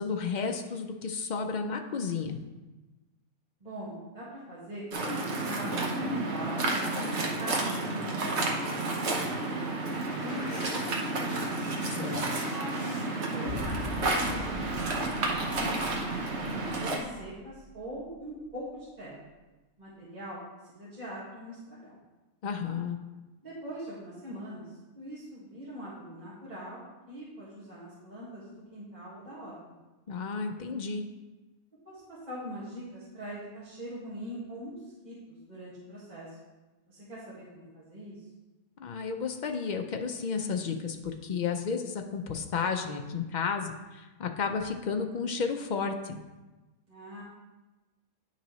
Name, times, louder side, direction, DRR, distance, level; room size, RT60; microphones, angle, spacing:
voice 1, 0.0-2.4 11.9-12.3 22.4-23.0 30.1-31.0 38.8-46.2, left 5 dB, 70° left, 4 dB, 0.4 m, -32 dB
voice 2, 3.6-8.4 8.7-11.4 12.3-15.9 16.5-19.3 19.8-22.0 23.4-29.8 31.9-36.4 36.9-38.3 46.9-47.2, equal, 30° right, -10 dB, 1.8 m, -42 dB
Waves surf, 4.9-17.0, right 2 dB, 55° right, 1.2 m, -31 dB
sound 1, 9.9-13.1 13.5-14.0, left 1 dB, 35° left, 1.3 m, -47 dB
sound 2, 13.4-17.7 17.9-18.0, left 1 dB, 85° right, 1.5 m, -42 dB
9.9 x 5.5 x 3.1 m, 1.2 s
omnidirectional pair, 1.4 m